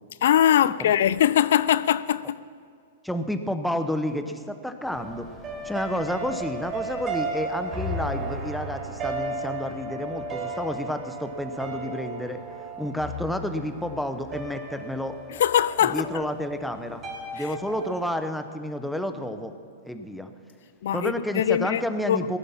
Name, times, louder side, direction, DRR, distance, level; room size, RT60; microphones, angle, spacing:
voice 1, 0.2-2.4 15.4-16.2 17.4-17.5 20.8-21.8 22.1-22.2, left 10 dB, 70° left, 0.3 m, -22 dB
voice 2, 3.0-5.3 5.6-12.4 12.8-15.1 15.9-17.0 17.3-19.5 19.8-20.3 20.9-22.4, left 1 dB, ahead, 0.9 m, -30 dB
sound 1, 4.9-18.1, right 2 dB, 25° right, 3.9 m, -35 dB
17.0 x 11.0 x 5.7 m
hypercardioid pair, 135°, 0 cm